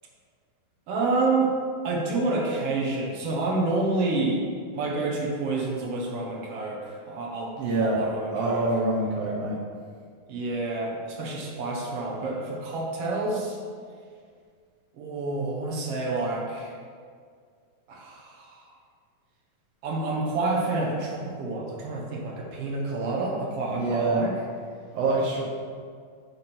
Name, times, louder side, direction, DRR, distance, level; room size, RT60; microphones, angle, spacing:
voice 1, 0.9-1.5 1.8-4.5 4.7-8.6 10.3-13.6 14.9-16.7 17.9-18.7 19.8-24.3, right 3 dB, 60° right, -2 dB, 1.7 m, -28 dB
voice 2, 7.6-8.0 8.3-9.6 23.7-24.2 24.9-25.4, right 2 dB, 75° right, -4 dB, 1.4 m, -25 dB
10.5 x 3.7 x 6.0 m, 2.1 s
omnidirectional pair, 4.3 m